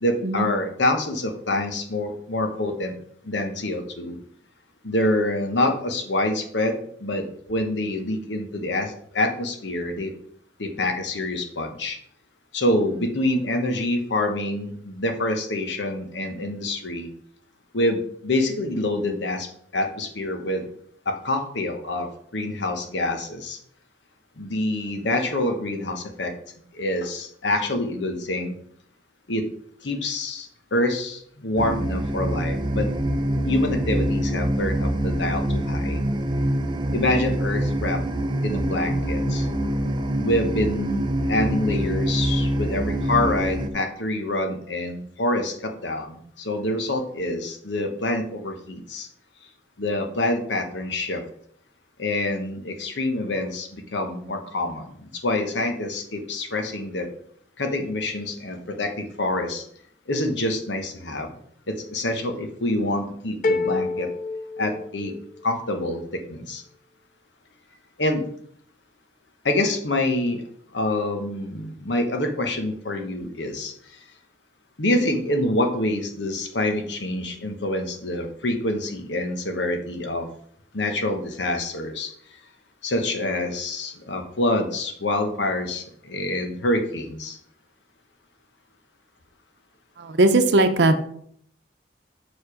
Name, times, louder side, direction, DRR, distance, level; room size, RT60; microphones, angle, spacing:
voice 1, 0.0-3.0 3.2-4.2 4.8-10.1 10.6-12.0 12.5-17.1 17.7-20.7 21.0-23.6 24.4-26.3 26.7-28.6 29.3-29.4 29.8-32.9 33.5-36.0 36.9-38.0 38.4-39.5 40.2-49.1 49.8-51.2 52.0-57.1 57.6-59.6 60.1-61.3 61.7-64.1 64.6-65.1 65.4-66.0 66.3-66.6 68.0-68.2 69.4-70.4 70.7-74.0 74.8-80.3 80.7-82.1 82.8-87.4, left 1 dB, 90° left, 5 dB, 1.1 m, -26 dB
sound 1, 31.6-43.7, right 1 dB, 25° right, 0.5 m, -25 dB
sound 2, 63.4-65.4, left 3 dB, 50° left, 0.5 m, -27 dB
voice 2, 90.0-91.0, right 2 dB, 75° right, 9 dB, 0.7 m, -18 dB
6.5 x 4.8 x 5.0 m, 0.65 s
head